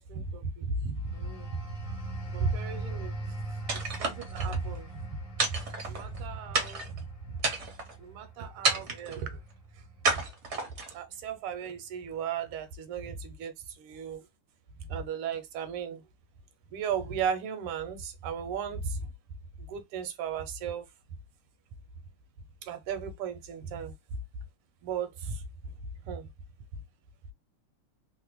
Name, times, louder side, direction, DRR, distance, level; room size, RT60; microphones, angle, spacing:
voice 1, 0.0-1.5 2.3-3.1 4.0-4.9 5.5-7.0 8.0-9.4 10.1-10.2 10.9-13.5 13.8-14.2 14.9-16.0 16.7-19.1 19.7-20.9 22.6-23.9 24.8-25.4 26.1-26.3, right 6 dB, 80° right, 1.6 m, -35 dB
sound 1, 1.0-11.3 11.7-12.0, right 2 dB, 55° left, 1.5 m, -41 dB
sound 2, 3.7-4.6 5.4-6.2 6.5-7.0 7.4-7.9 8.6-9.2 10.0-11.0, right 3 dB, 60° right, 0.7 m, -30 dB
3.6 x 2.1 x 2.9 m
omnidirectional pair, 2.4 m